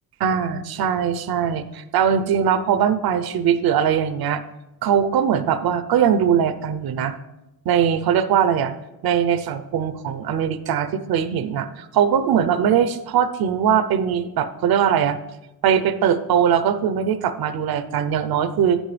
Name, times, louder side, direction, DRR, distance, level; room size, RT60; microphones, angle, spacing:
voice 1, 0.2-4.4 4.8-7.1 7.7-8.7 9.0-15.2 15.6-18.8, right 8 dB, 80° right, 12 dB, 0.7 m, -21 dB
9.8 x 8.8 x 3.3 m, 0.96 s
wide cardioid pair, 165°, 36 cm